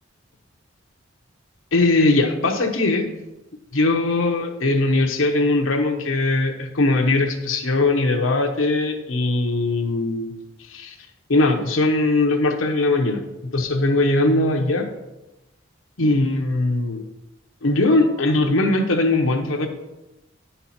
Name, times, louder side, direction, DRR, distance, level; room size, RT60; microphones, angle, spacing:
voice 1, 1.7-3.1 3.7-10.3 10.7-10.9 11.3-13.2 13.5-14.9 16.0-17.0 17.6-19.7, left 2 dB, 90° left, 4 dB, 1.1 m, -20 dB
10.5 x 5.7 x 4.3 m, 1.0 s
head